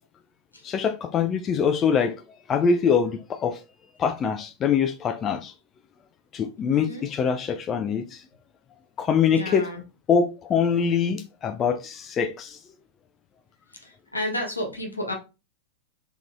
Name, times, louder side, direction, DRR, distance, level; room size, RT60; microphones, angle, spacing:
voice 1, 0.6-2.2 2.5-3.6 4.0-5.5 6.3-8.2 9.0-9.7 10.1-12.6, left 6 dB, 25° left, 0.3 m, -24 dB
voice 2, 6.7-7.0 9.3-9.8 13.7-15.1, left 1 dB, 80° left, 1.0 m, -32 dB
3.7 x 3.0 x 2.4 m
figure-of-eight pair, 90°, 0 cm